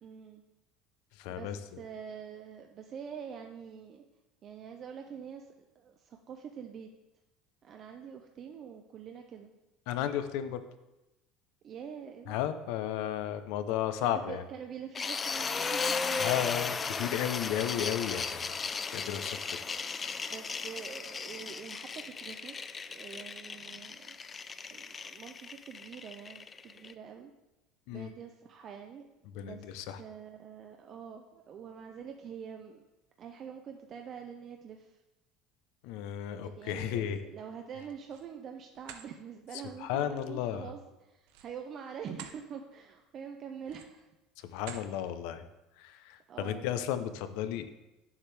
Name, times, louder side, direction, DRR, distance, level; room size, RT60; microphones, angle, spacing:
voice 1, 0.0-0.4 1.3-4.0 4.4-6.9 7.6-9.5 11.6-12.4 14.0-16.5 20.3-24.2 24.7-27.3 27.9-29.0 29.4-29.7 30.0-32.8 33.2-35.0 36.4-44.1 45.0-45.1 46.3-46.7, right 7 dB, 40° right, 4 dB, 0.6 m, -45 dB
voice 2, 1.1-1.6 9.9-10.6 12.3-14.4 16.2-18.6 18.9-19.6 27.9-28.1 29.3-30.0 35.8-37.2 39.8-40.7 44.4-45.4 45.8-47.7, left 10 dB, 75° left, 10 dB, 0.6 m, -34 dB
sound 1, 14.9-26.9, left 5 dB, 20° left, 0.4 m, -36 dB
sound 2, 37.7-38.3 38.7-39.1 41.2-42.4 42.9-43.0 43.6-44.1 44.6-44.9, right 9 dB, 80° right, 0.7 m, -48 dB
9.6 x 7.2 x 3.4 m, 0.98 s
cardioid pair, 135°, 0 cm